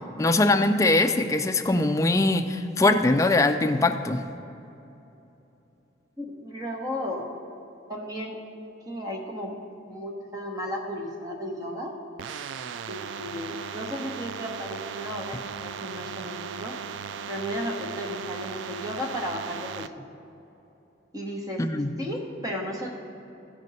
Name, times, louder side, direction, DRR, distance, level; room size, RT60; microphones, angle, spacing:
voice 1, 0.2-4.2 21.6-21.9, left 2 dB, 15° left, 7 dB, 0.3 m, -22 dB
voice 2, 6.2-7.3 7.9-8.4 8.9-9.6 9.9-12.0 12.9-16.8 17.3-20.0 21.1-21.6 22.0-22.9, equal, 20° right, 0 dB, 1.1 m, -34 dB
sound 1, 12.2-19.9, right 7 dB, 75° right, 0.3 m, -37 dB
15.5 x 5.3 x 4.1 m, 2.9 s
head